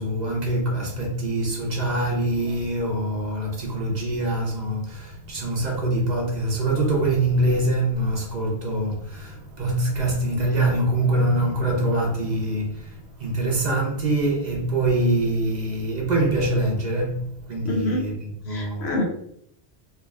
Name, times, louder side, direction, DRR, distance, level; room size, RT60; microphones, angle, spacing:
voice 1, 0.0-19.0, right 1 dB, 45° right, 0.8 m, -24 dB
voice 2, 17.6-18.1 18.5-19.0, left 2 dB, 80° left, 1.0 m, -26 dB
3.3 x 3.3 x 2.3 m
omnidirectional pair, 1.1 m